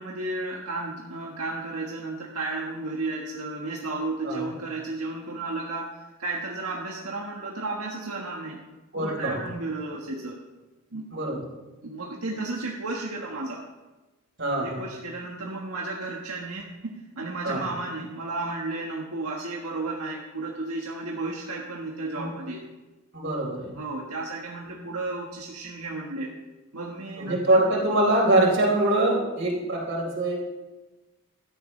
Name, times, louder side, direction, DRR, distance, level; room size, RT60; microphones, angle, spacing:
voice 1, 0.0-8.6 8.9-10.4 10.9-11.0 11.8-13.6 14.6-22.6 23.7-26.3 26.7-27.6, right 2 dB, 85° right, -2 dB, 1.5 m, -33 dB
voice 2, 8.9-9.3 11.1-11.4 14.4-14.8 17.4-17.6 22.2-22.3 23.1-23.7 27.2-30.4, right 1 dB, 55° right, -2 dB, 4.2 m, -23 dB
16.0 x 13.0 x 3.3 m, 1.2 s
head